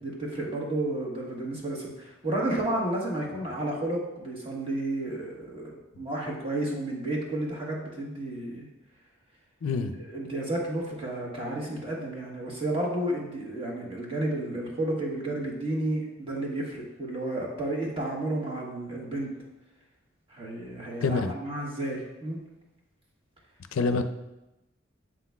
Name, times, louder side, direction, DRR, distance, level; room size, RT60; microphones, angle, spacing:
voice 1, 0.0-8.7 10.1-19.3 20.3-22.4, right 1 dB, 30° right, -3 dB, 1.4 m, -32 dB
voice 2, 9.6-9.9 21.0-21.3 23.7-24.0, left 4 dB, 85° left, 9 dB, 0.4 m, -26 dB
7.7 x 5.8 x 2.3 m, 0.96 s
head